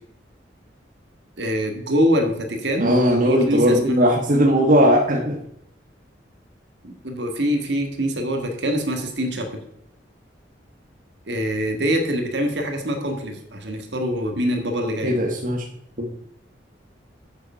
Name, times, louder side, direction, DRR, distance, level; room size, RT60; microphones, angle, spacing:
voice 1, 1.4-3.0 3.2-4.1 6.8-9.6 11.3-15.2, equal, 70° right, 4 dB, 1.8 m, -24 dB
voice 2, 2.8-5.4 15.0-15.6 16.0-16.1, equal, 45° right, -1 dB, 1.3 m, -18 dB
8.1 x 6.9 x 5.6 m, 0.73 s
head